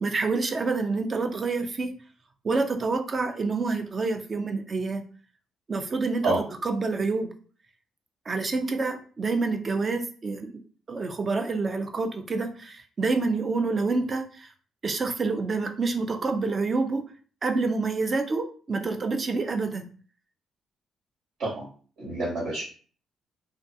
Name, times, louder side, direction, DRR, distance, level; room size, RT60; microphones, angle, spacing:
voice 1, 0.0-2.0 2.4-5.0 5.7-6.3 6.6-7.3 8.3-10.5 10.9-14.5 14.8-17.0 17.4-19.9, right 3 dB, 35° right, 5 dB, 0.4 m, -27 dB
voice 2, 22.0-22.6, right 2 dB, 75° right, -8 dB, 1.3 m, -27 dB
2.4 x 2.3 x 2.5 m, 0.42 s
cardioid pair, 90°, 0 cm